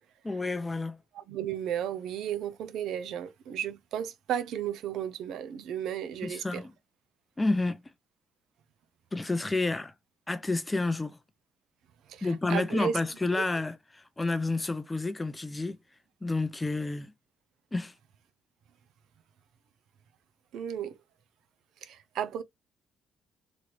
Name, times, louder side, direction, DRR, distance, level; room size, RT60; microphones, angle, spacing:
voice 1, 0.2-1.0 6.2-6.7 7.4-7.8 9.1-9.9 10.3-11.2 12.2-15.8 16.2-17.1 17.7-17.9, left 2 dB, 15° left, 0.4 m, -30 dB
voice 2, 1.1-6.6 12.1-12.9 13.4-13.5 20.5-21.0 21.8-22.4, right 9 dB, 75° right, 0.5 m, -34 dB
3.0 x 2.4 x 3.1 m
cardioid pair, 120°, 0 cm